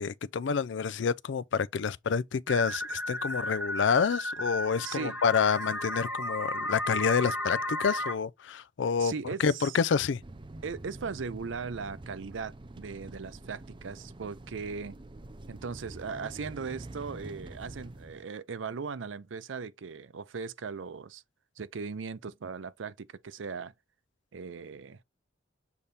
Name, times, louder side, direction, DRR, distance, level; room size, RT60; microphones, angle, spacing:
voice 1, 0.0-9.1 9.4-10.2, left 6 dB, 70° left, 0.4 m, -28 dB
sound 1, 2.5-8.1, left 1 dB, 10° right, 1.0 m, -34 dB
voice 2, 4.8-5.2 9.0-9.8 10.6-14.9 15.5-21.2 21.6-23.7 24.3-25.0, right 5 dB, 80° right, 0.5 m, -38 dB
sound 2, 10.2-18.3, right 2 dB, 25° right, 0.5 m, -46 dB
7.1 x 3.4 x 4.0 m
head